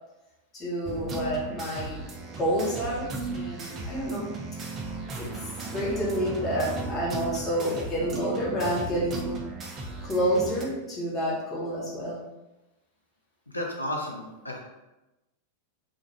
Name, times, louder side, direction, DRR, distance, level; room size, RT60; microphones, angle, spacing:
voice 1, 0.5-2.0 2.4-4.3 5.2-5.3 5.7-9.3 10.0-12.2, equal, 25° left, -6 dB, 1.2 m, -29 dB
sound 1, 0.8-10.6, right 3 dB, 25° right, 0.4 m, -36 dB
voice 2, 13.5-14.6, left 1 dB, 80° left, 0 dB, 0.4 m, -32 dB
2.4 x 2.4 x 3.1 m, 0.99 s
figure-of-eight pair, 90°, 0 cm